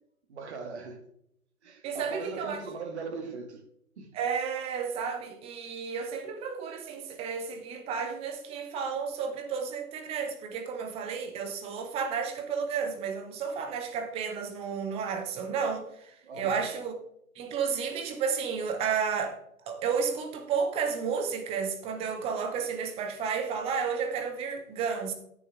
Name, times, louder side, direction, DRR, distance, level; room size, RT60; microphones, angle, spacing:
voice 1, 0.3-1.0 1.6-3.6 4.0-4.1 16.2-16.7, right 4 dB, 50° right, 2.2 m, -39 dB
voice 2, 1.8-2.6 4.1-16.9 17.3-19.4 19.7-25.1, right 6 dB, 15° right, 1.0 m, -32 dB
14.5 x 6.8 x 3.7 m
figure-of-eight pair, 120°, 43 cm